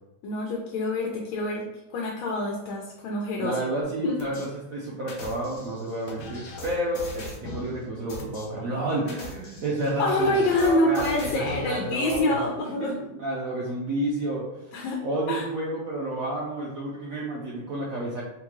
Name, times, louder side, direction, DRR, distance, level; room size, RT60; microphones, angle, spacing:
voice 1, 0.2-1.7 1.9-3.5 4.0-4.4 10.0-13.0 14.7-15.0 15.3-15.4, left 2 dB, 80° left, -1 dB, 1.4 m, -26 dB
voice 2, 3.4-14.6 15.0-18.2, right 1 dB, 85° right, -4 dB, 0.7 m, -30 dB
sound 1, 4.2-4.5 5.1-7.7 8.1-8.4 9.0-11.7 12.1-12.2, left 2 dB, 60° left, 0.9 m, -39 dB
3.6 x 3.2 x 3.0 m, 0.93 s
omnidirectional pair, 2.2 m